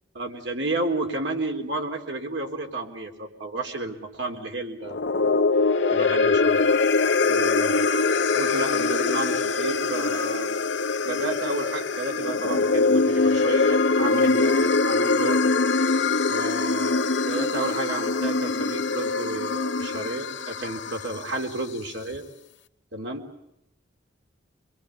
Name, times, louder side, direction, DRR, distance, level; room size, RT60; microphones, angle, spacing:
voice 1, 0.1-5.1 5.9-6.6 7.2-10.6 11.0-15.5 16.3-22.2 22.9-23.3, right 2 dB, 80° right, 3 dB, 3.7 m, -32 dB
sound 1, 4.8-21.3, left 3 dB, 70° left, 1.0 m, -23 dB
26.5 x 23.0 x 8.4 m, 0.82 s
head